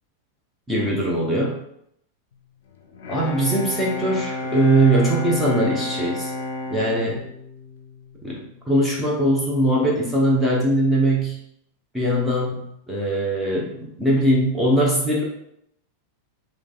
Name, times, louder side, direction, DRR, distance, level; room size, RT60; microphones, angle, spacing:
voice 1, 0.7-1.6 3.1-6.3 6.7-7.2 8.2-8.4 8.7-11.4 11.9-15.2, right 1 dB, 5° right, -4 dB, 1.0 m, -21 dB
Bowed string instrument, 2.8-8.5, left 1 dB, 55° left, 0.6 m, -31 dB
5.0 x 3.2 x 2.4 m, 0.75 s
figure-of-eight pair, 90°, 0 cm